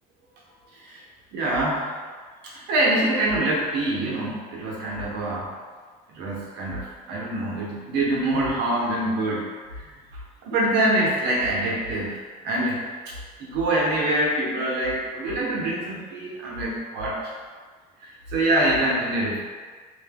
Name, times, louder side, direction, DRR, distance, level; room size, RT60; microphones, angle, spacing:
voice 1, 1.3-1.9 2.4-5.5 6.1-9.5 9.7-9.9 10.4-13.1 13.4-17.3 18.0-19.4, right 1 dB, 90° right, -4 dB, 0.8 m, -25 dB
2.5 x 2.1 x 3.5 m, 1.5 s
cardioid pair, 110°, 17 cm